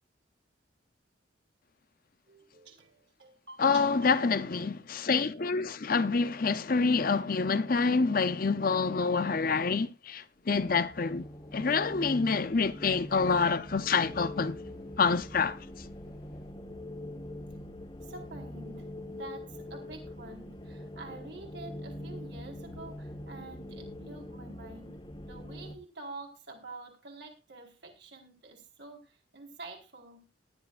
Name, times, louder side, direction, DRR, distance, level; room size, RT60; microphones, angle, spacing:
voice 1, 2.3-3.9 18.0-25.0 25.3-30.3, right 3 dB, 60° right, 4.4 m, -48 dB
voice 2, 3.6-11.3 11.5-14.6 15.0-15.6, left 4 dB, 45° left, 0.6 m, -27 dB
sound 1, 10.4-25.8, left 1 dB, 25° left, 1.6 m, -43 dB
18.5 x 12.0 x 2.5 m
head